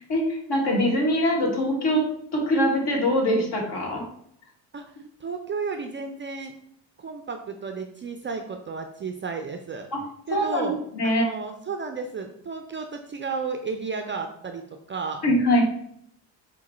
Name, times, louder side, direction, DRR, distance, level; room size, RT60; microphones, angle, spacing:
voice 1, 0.1-2.0 2.3-4.0 9.9-10.0 10.3-11.3 15.2-15.6, equal, 55° left, 0 dB, 1.5 m, -23 dB
voice 2, 5.2-6.5 7.0-9.9 10.3-10.8 11.0-15.2, right 5 dB, 25° right, 5 dB, 0.4 m, -33 dB
4.7 x 2.2 x 4.1 m, 0.70 s
supercardioid pair, 80°, 48 cm